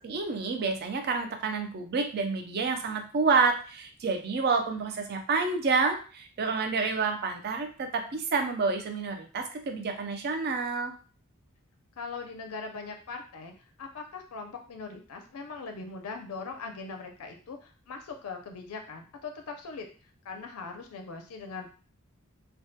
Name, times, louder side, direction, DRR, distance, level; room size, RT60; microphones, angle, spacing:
voice 1, 0.0-10.9, right 4 dB, 50° right, 5 dB, 0.4 m, -29 dB
voice 2, 12.0-13.5 13.8-19.9 20.2-21.7, left 4 dB, 80° left, 4 dB, 0.4 m, -40 dB
2.2 x 2.1 x 2.6 m, 0.39 s
head